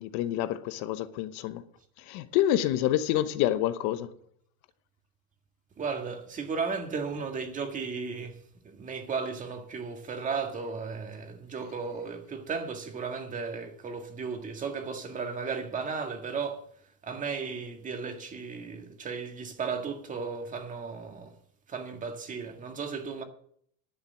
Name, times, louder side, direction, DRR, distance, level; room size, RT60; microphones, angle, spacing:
voice 1, 0.0-1.6 2.0-4.1, left 13 dB, 70° left, 1.0 m, -28 dB
voice 2, 5.8-8.4 8.8-16.6 17.0-21.3 21.7-23.2, right 5 dB, 25° right, 1.8 m, -35 dB
10.5 x 7.0 x 8.3 m
cardioid pair, 145°, 30 cm